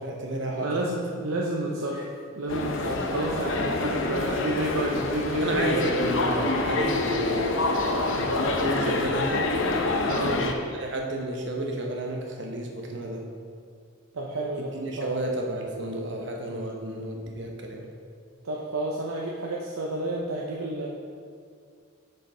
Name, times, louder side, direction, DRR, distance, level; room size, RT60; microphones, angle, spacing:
voice 1, 0.0-0.7 5.4-7.8 8.1-9.5 10.3-13.2 14.6-17.8, right 1 dB, 55° right, 1 dB, 1.0 m, -32 dB
voice 2, 0.5-2.1 2.3-6.1 10.1-10.4 14.1-15.2 18.4-20.9, right 2 dB, 85° right, -3 dB, 0.7 m, -30 dB
sound 1, 2.5-10.5, left 2 dB, 65° left, 0.7 m, -26 dB
6.8 x 6.6 x 4.3 m, 2.2 s
head